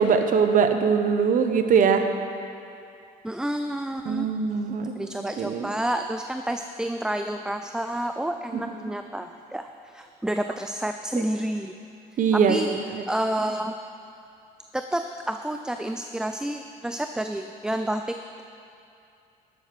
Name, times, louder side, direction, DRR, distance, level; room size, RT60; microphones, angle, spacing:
voice 1, 0.0-2.0 4.1-4.9 5.4-5.7 11.2-11.3 12.2-12.6, right 6 dB, 50° right, 7 dB, 1.0 m, -21 dB
voice 2, 3.2-4.3 4.9-11.7 12.3-12.7 13.1-13.8 14.7-18.4, right 1 dB, 5° right, 7 dB, 0.3 m, -29 dB
11.5 x 7.8 x 6.1 m, 2.6 s
cardioid pair, 110°, 17 cm